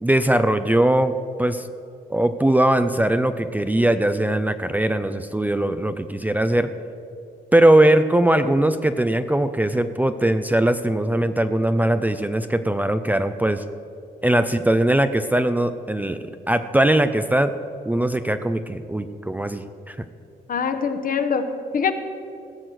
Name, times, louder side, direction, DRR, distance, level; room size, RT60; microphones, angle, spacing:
voice 1, 0.0-1.7 2.1-6.7 7.5-13.6 14.2-17.5 17.9-20.1, right 1 dB, 10° right, 10 dB, 0.5 m, -20 dB
voice 2, 20.5-21.9, left 6 dB, 55° left, 8 dB, 1.0 m, -24 dB
16.0 x 6.0 x 8.0 m, 2.5 s
cardioid pair, 90°, 17 cm